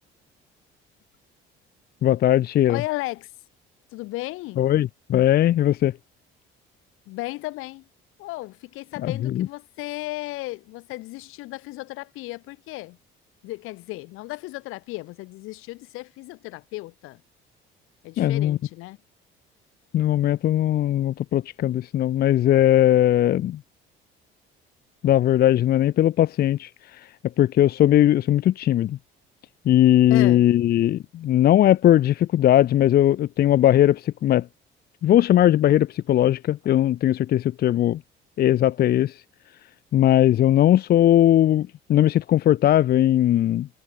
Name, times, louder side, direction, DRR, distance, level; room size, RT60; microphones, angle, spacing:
voice 1, 2.0-2.8 4.6-5.9 9.2-9.5 18.2-18.6 19.9-23.6 25.0-27.0 27.4-29.0 29.7-34.5 35.0-38.0 38.4-39.2 39.9-43.7, left 12 dB, 50° left, 0.5 m, -19 dB
voice 2, 2.7-3.3 3.9-4.6 7.1-7.8 8.2-13.0 13.4-17.2 18.0-19.0 30.1-30.5, left 20 dB, 85° left, 5.7 m, -34 dB
cardioid pair, 105°, 21 cm